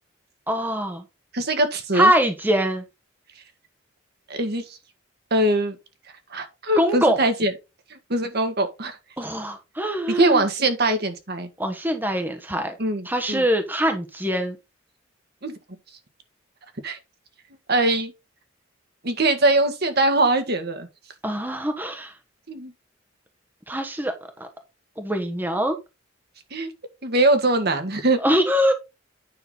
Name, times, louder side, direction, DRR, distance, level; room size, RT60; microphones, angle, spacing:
voice 1, 0.5-1.0 1.9-2.8 6.8-7.2 9.2-10.4 11.6-12.8 13.0-14.6 21.2-22.1 23.7-24.5 25.0-25.8 28.2-28.7, equal, 10° right, 1.0 m, -23 dB
voice 2, 1.3-2.1 4.3-4.8 5.3-5.7 6.3-7.5 7.9-9.0 10.1-11.5 12.8-13.4 15.4-15.5 16.8-17.0 17.7-18.1 19.0-20.9 22.5-22.7 26.5-26.7 27.0-28.2, right 2 dB, 50° right, 1.6 m, -22 dB
9.4 x 5.9 x 3.9 m
head